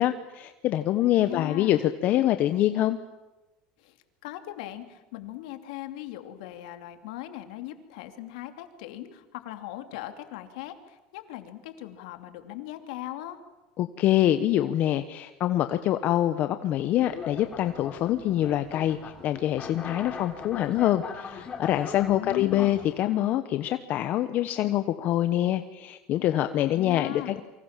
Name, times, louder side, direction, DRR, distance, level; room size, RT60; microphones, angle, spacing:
voice 1, 0.0-3.0 13.8-27.4, left 13 dB, 45° left, 10 dB, 1.2 m, -25 dB
voice 2, 1.0-1.8 3.8-4.0 4.2-13.4 22.0-22.9 26.6-27.4, left 14 dB, 85° left, 7 dB, 2.9 m, -39 dB
sound 1, 16.9-23.0, left 5 dB, 25° left, 3.4 m, -40 dB
28.5 x 24.5 x 7.5 m, 1.1 s
cardioid pair, 140°, 4 cm